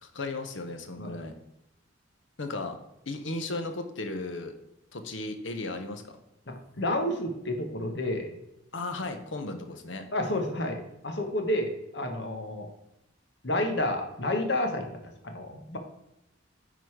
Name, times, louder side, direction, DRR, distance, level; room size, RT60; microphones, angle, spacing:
voice 1, 0.0-1.4 2.4-2.8 3.1-4.5 4.9-6.1 8.7-10.1, left 2 dB, 80° left, 6 dB, 1.0 m, -35 dB
voice 2, 6.5-8.3 10.1-12.7 13.4-15.8, left 1 dB, 60° left, 4 dB, 1.3 m, -30 dB
9.4 x 4.0 x 4.7 m, 0.86 s
head